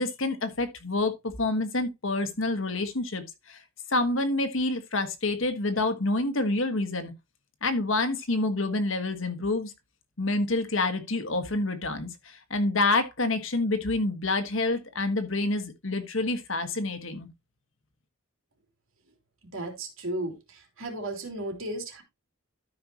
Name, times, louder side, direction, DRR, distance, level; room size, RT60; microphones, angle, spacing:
voice 1, 0.0-3.6 3.9-7.1 7.6-9.7 10.2-17.3, left 2 dB, 60° left, 1.5 m, -28 dB
voice 2, 19.5-22.0, right 1 dB, 65° right, 3.3 m, -35 dB
13.0 x 5.7 x 2.9 m
head